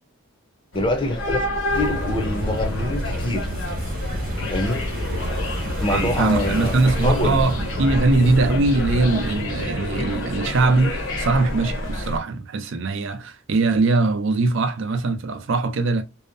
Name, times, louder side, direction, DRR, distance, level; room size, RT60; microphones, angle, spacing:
sound 1, 0.7-12.2, left 1 dB, 65° left, 0.7 m, -29 dB
voice 1, 0.7-1.5 1.7-3.5 4.5-4.8 5.8-7.4, left 1 dB, 25° left, 0.5 m, -25 dB
sound 2, 1.7-9.4, right 1 dB, 45° right, 0.9 m, -29 dB
voice 2, 5.9-16.0, right 3 dB, 60° right, 0.5 m, -21 dB
2.7 x 2.0 x 2.5 m
head